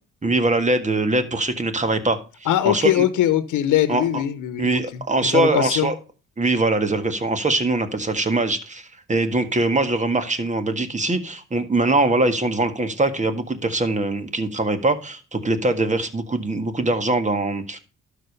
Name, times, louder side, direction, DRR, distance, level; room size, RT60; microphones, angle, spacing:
voice 1, 0.2-2.2 2.6-3.0 3.9-4.2 4.6-5.9 6.4-17.8, right 2 dB, 25° right, 10 dB, 1.7 m, -22 dB
voice 2, 2.5-4.7 5.3-5.9, left 12 dB, 85° left, 14 dB, 1.0 m, -21 dB
12.0 x 5.2 x 5.3 m, 0.34 s
cardioid pair, 90°, 30 cm